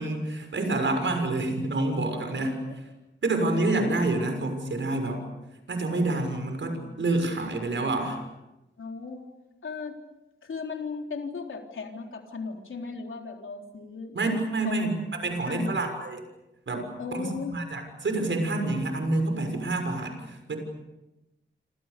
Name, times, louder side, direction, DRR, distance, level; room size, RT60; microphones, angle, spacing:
voice 1, 0.0-2.6 3.2-5.2 5.7-8.2 14.1-16.2 16.7-16.9 17.1-20.6, right 2 dB, 70° right, 5 dB, 6.5 m, -28 dB
voice 2, 2.4-2.8 8.8-9.3 9.6-10.0 10.4-14.2 14.6-14.8 15.5-15.7 17.0-17.5, left 4 dB, 90° left, 3 dB, 3.8 m, -36 dB
28.5 x 26.0 x 6.9 m, 1.0 s
wide cardioid pair, 80°, 20 cm